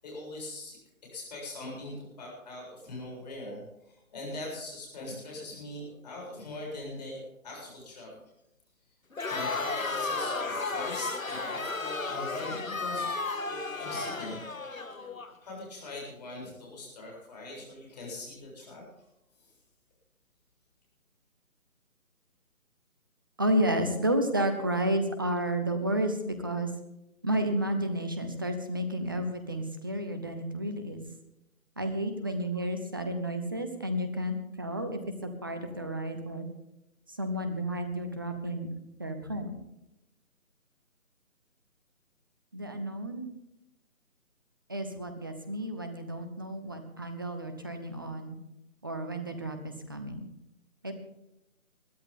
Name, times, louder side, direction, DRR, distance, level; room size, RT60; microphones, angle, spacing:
voice 1, 0.0-0.8 1.1-3.6 3.9-8.2 9.3-13.2 13.4-14.4 15.4-18.9 19.4-19.5, left 2 dB, 30° left, -2 dB, 7.3 m, -41 dB
Crowd, 9.1-15.3, left 3 dB, 65° left, 1.9 m, -33 dB
voice 2, 23.4-26.7 27.2-31.0 31.8-36.5 37.1-38.7 39.0-39.5 42.5-43.3 44.7-48.4 48.8-50.3 50.8-50.9, right 1 dB, 15° right, 8 dB, 0.9 m, -31 dB
22.0 x 13.5 x 3.7 m, 0.89 s
figure-of-eight pair, 155°, 42 cm